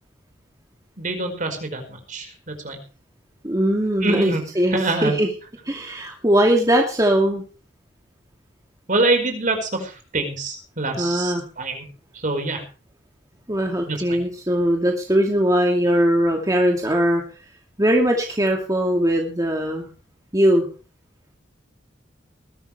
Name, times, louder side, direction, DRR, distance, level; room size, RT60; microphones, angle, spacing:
voice 1, 1.0-2.8 4.0-4.4 4.7-5.2 8.9-11.8 12.1-12.6 13.9-14.2, right 2 dB, 45° right, 5 dB, 5.0 m, -25 dB
voice 2, 3.4-5.3 5.7-7.4 11.0-11.4 13.5-17.2 17.8-19.9 20.3-20.7, equal, 20° right, 2 dB, 2.4 m, -20 dB
20.5 x 13.0 x 3.3 m, 0.36 s
head